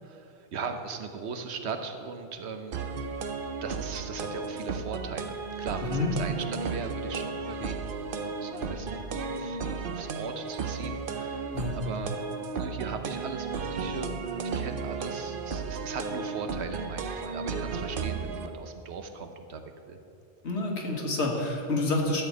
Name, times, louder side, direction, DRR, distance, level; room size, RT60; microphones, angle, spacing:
voice 1, 0.0-2.8 3.6-12.2 12.6-14.1 14.4-19.6 19.9-20.0, right 5 dB, 75° right, 7 dB, 1.1 m, -38 dB
sound 1, 2.7-18.5, right 4 dB, 60° right, 0.8 m, -34 dB
voice 2, 20.4-22.2, left 2 dB, 85° left, 0 dB, 1.8 m, -28 dB
12.5 x 4.5 x 8.2 m, 2.7 s
omnidirectional pair, 1.1 m